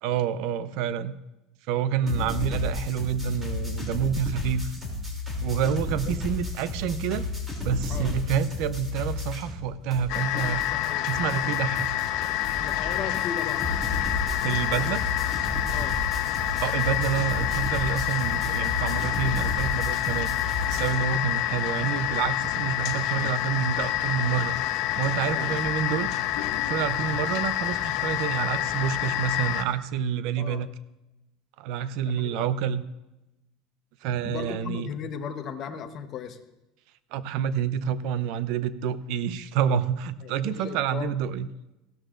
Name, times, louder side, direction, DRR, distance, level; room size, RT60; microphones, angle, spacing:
voice 1, 0.0-1.2 1.7-4.7 5.4-7.3 7.6-10.6 11.1-11.9 14.4-15.0 16.6-20.3 20.6-24.6 25.0-26.2 26.6-30.7 31.6-32.8 34.0-34.9 37.1-41.5, right 8 dB, 65° right, 14 dB, 0.6 m, -28 dB
sound 1, 2.1-9.6 9.9-20.9, left 2 dB, 10° right, 2.9 m, -33 dB
sound 2, 10.1-29.6, left 13 dB, 65° left, 0.8 m, -28 dB
voice 2, 10.7-11.0 12.6-13.7 15.7-16.0 25.3-25.5 30.4-30.6 32.0-32.4 34.2-36.4 40.2-41.1, left 7 dB, 40° left, 6 dB, 1.0 m, -36 dB
16.0 x 13.0 x 2.5 m, 0.97 s
cardioid pair, 150°, 0 cm